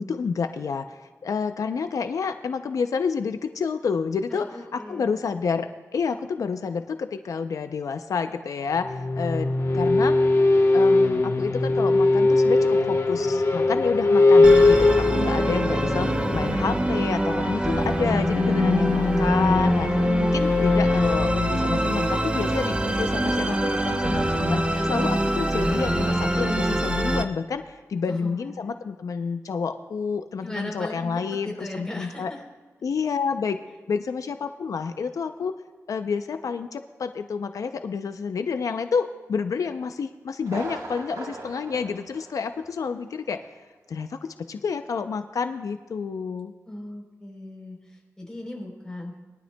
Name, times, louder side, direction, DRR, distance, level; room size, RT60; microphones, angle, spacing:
voice 1, 0.0-4.5 4.7-10.2 10.7-19.9 20.2-32.3 32.8-33.6 33.9-35.6 35.9-43.5 43.9-46.5, left 5 dB, 80° left, 8 dB, 0.4 m, -29 dB
voice 2, 4.3-5.2 28.1-28.7 30.4-32.4 46.6-49.1, left 1 dB, 10° left, -1 dB, 3.4 m, -38 dB
sound 1, 8.7-23.4, left 3 dB, 55° left, 1.1 m, -22 dB
Musical instrument, 14.4-27.2, right 1 dB, 20° right, 0.8 m, -25 dB
Thunder, 40.4-43.0 43.3-43.4 43.9-44.0, right 2 dB, 70° right, 1.4 m, -39 dB
21.0 x 12.0 x 2.2 m, 1.3 s
wide cardioid pair, 95°, 6 cm